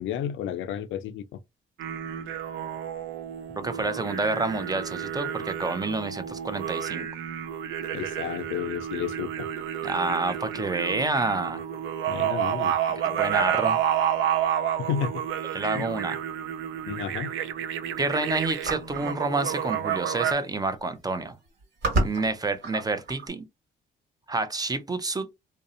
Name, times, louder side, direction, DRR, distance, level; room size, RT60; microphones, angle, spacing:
voice 1, 0.0-1.4 7.9-9.5 12.1-12.8 14.8-15.1 15.7-15.9 16.9-17.3, left 9 dB, 75° left, 0.4 m, -31 dB
sound 1, 1.8-20.3, right 9 dB, 80° right, 0.4 m, -30 dB
voice 2, 3.6-7.1 9.8-11.6 13.0-13.8 15.5-16.2 18.0-21.4 22.0-23.4 24.3-25.3, right 3 dB, 20° right, 0.4 m, -28 dB
sound 2, 18.6-19.1 20.2-20.3 20.5-20.9 21.5-23.3, right 2 dB, 60° right, 1.3 m, -29 dB
2.6 x 2.0 x 2.6 m
cardioid pair, 90°, 20 cm